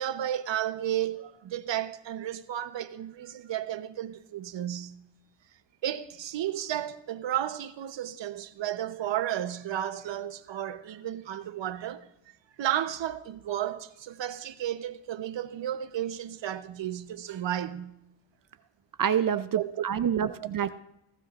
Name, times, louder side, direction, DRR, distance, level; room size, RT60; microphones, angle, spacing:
voice 1, 0.0-4.9 5.8-12.1 12.6-18.0 19.3-19.8 20.3-20.5, right 11 dB, 70° right, 0.9 m, -33 dB
voice 2, 19.0-20.8, right 8 dB, 45° right, 0.5 m, -27 dB
16.0 x 15.5 x 2.5 m
cardioid pair, 70°, 46 cm